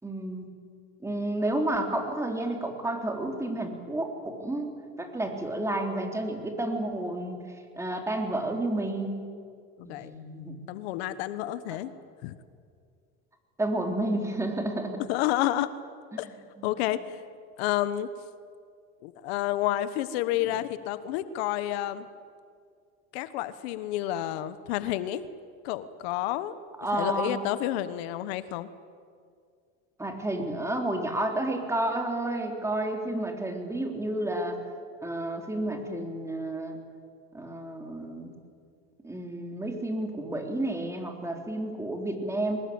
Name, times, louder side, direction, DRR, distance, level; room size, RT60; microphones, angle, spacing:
voice 1, 0.0-0.5 1.0-7.4 7.8-9.1 9.8-10.6 11.7-11.8 13.6-15.0 16.6-16.7 26.8-27.4 30.0-34.6 35.0-36.8 37.3-38.3 39.0-42.6, right 1 dB, 10° right, 4 dB, 3.5 m, -31 dB
voice 2, 9.8-10.1 10.7-11.9 12.2-12.4 15.1-15.7 16.2-16.3 16.6-17.2 17.6-18.1 19.0-22.1 23.1-25.2 25.6-26.6 26.9-28.7, left 13 dB, 80° left, 14 dB, 1.2 m, -30 dB
23.5 x 20.5 x 8.7 m, 2.2 s
supercardioid pair, 125°, 31 cm